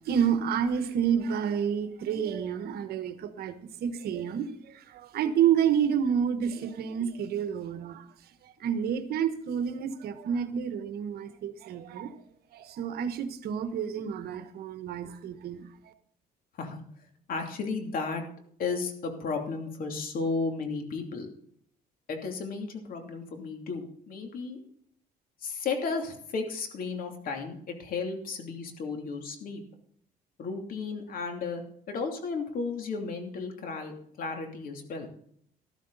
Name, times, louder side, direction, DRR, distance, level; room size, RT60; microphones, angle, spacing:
voice 1, 0.1-4.5 4.9-8.0 8.6-12.1 12.5-15.7, right 8 dB, 70° right, 1.3 m, -29 dB
voice 2, 17.3-18.2 18.6-21.3 22.1-24.6 25.4-29.6 30.4-31.6 31.9-35.1, left 4 dB, 55° left, 2.9 m, -34 dB
13.0 x 13.0 x 4.1 m
cardioid pair, 110°, 17 cm